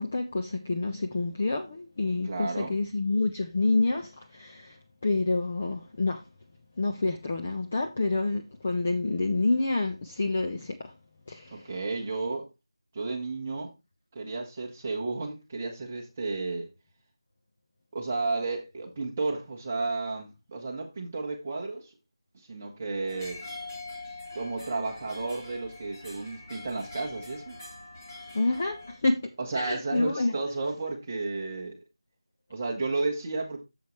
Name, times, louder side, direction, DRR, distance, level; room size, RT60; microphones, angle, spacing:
voice 1, 0.0-6.2 6.8-10.9 11.3-11.7 28.3-29.3 29.6-30.4, left 2 dB, 15° left, 0.4 m, -28 dB
voice 2, 2.2-2.7 11.5-12.5 12.9-13.7 14.1-16.7 17.9-21.9 22.3-23.4 24.3-27.6 29.4-31.8 32.5-33.6, right 3 dB, 15° right, 1.1 m, -32 dB
sound 1, 23.1-29.0, left 2 dB, 30° left, 2.7 m, -44 dB
8.8 x 7.2 x 3.1 m
figure-of-eight pair, 175°, 3 cm